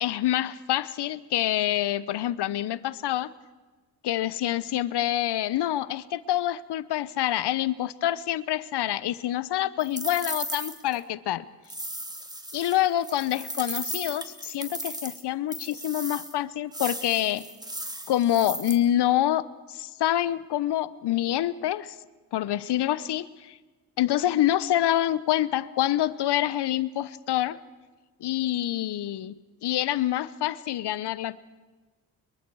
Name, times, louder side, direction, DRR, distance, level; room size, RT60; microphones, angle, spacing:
voice 1, 0.0-3.3 4.0-11.4 12.5-17.5 18.1-21.9 22.3-23.6 24.0-27.6 28.2-29.4 29.6-31.4, left 12 dB, 65° left, 18 dB, 1.0 m, -26 dB
sound 1, 9.8-11.0 11.7-15.2 15.5-16.3 16.7-18.8, right 1 dB, 10° right, 2.6 m, -36 dB
25.5 x 22.5 x 4.8 m, 1.3 s
hypercardioid pair, 50°, 43 cm